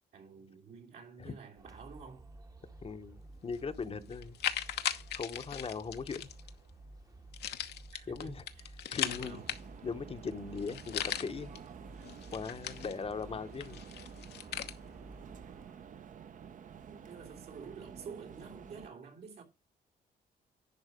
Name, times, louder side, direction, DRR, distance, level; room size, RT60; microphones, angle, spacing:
voice 1, 0.1-2.3 7.9-9.6 16.8-19.4, right 5 dB, 75° right, 3.2 m, -49 dB
sound 1, 1.6-15.8, right 2 dB, 20° right, 0.9 m, -53 dB
voice 2, 2.8-4.4 5.1-6.3 8.1-8.4 8.9-9.4 9.8-11.6 12.3-13.8, left 5 dB, 35° left, 0.8 m, -39 dB
sound 2, 3.5-3.6 4.1-6.5 7.3-9.9 10.3-10.4 10.6-11.6 12.0-13.2 13.6-14.7, left 10 dB, 90° left, 1.0 m, -38 dB
sound 3, 9.0-18.9, right 7 dB, 50° right, 0.7 m, -51 dB
11.0 x 4.3 x 5.0 m
cardioid pair, 100°, 17 cm